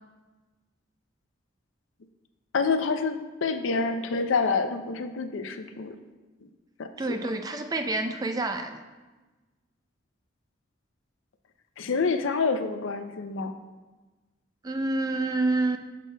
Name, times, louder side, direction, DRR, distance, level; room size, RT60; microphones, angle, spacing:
voice 1, 2.5-5.9 6.8-6.9 11.8-13.5, left 4 dB, 75° left, 8 dB, 0.5 m, -27 dB
voice 2, 7.0-8.8 14.6-15.8, right 2 dB, 20° right, 7 dB, 0.3 m, -28 dB
11.0 x 6.1 x 2.2 m, 1.2 s
head